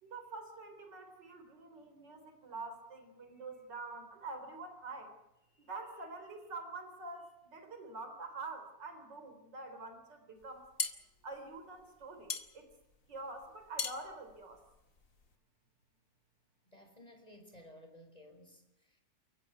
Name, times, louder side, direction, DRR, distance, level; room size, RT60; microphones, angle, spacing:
voice 1, 0.0-5.2 5.6-10.6 11.2-12.7 13.1-14.6, right 3 dB, 85° right, 7 dB, 4.5 m, -46 dB
sound 1, 10.4-15.4, left 5 dB, 50° left, 2.4 m, -41 dB
voice 2, 16.7-19.0, left 1 dB, 20° left, 5 dB, 5.3 m, -56 dB
30.0 x 16.0 x 9.5 m, 0.90 s
omnidirectional pair, 1.8 m